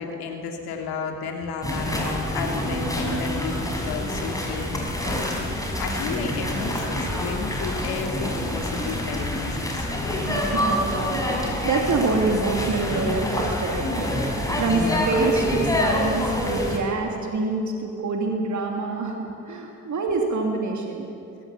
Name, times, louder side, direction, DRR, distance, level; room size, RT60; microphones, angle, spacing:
voice 1, 0.0-10.3 14.5-15.2, left 5 dB, 70° left, 2 dB, 2.8 m, -33 dB
sound 1, 1.6-16.8, left 1 dB, 10° left, 5.6 m, -27 dB
voice 2, 10.3-21.1, right 3 dB, 45° right, 2 dB, 2.8 m, -26 dB
21.5 x 17.0 x 7.3 m, 2.7 s
hypercardioid pair, 50°, 40 cm